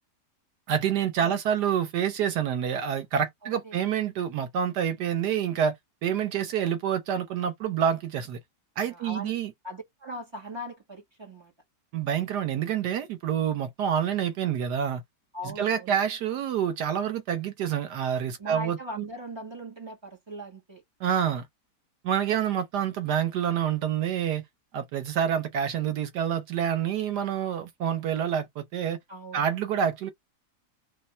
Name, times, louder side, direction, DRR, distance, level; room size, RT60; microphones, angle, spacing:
voice 1, 0.7-5.7 6.0-8.4 8.8-9.5 11.9-15.0 15.4-19.0 21.0-21.4 22.0-24.4 24.7-29.0 29.3-30.1, right 8 dB, 80° right, 1.4 m, -27 dB
voice 2, 3.4-3.8 8.8-9.3 9.6-11.5 15.3-16.0 18.4-20.8 29.1-29.5, equal, 15° right, 1.7 m, -40 dB
3.2 x 3.1 x 4.2 m
omnidirectional pair, 1.8 m